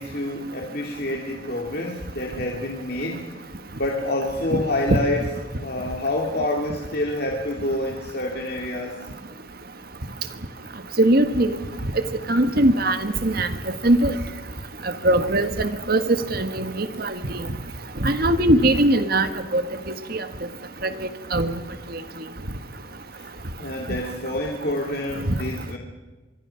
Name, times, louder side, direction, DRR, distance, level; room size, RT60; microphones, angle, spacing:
voice 1, 0.0-3.4 3.8-5.2 5.5-9.0 23.2-23.3 23.6-25.8, left 1 dB, 50° left, 0 dB, 2.5 m, -27 dB
voice 2, 11.0-11.6 12.3-13.5 13.8-14.1 15.0-17.2 18.0-19.6 20.1-20.2 20.8-20.9 21.3-21.5 25.3-25.4, right 1 dB, 50° right, 9 dB, 1.5 m, -20 dB
25.0 x 22.0 x 5.8 m, 1.2 s
head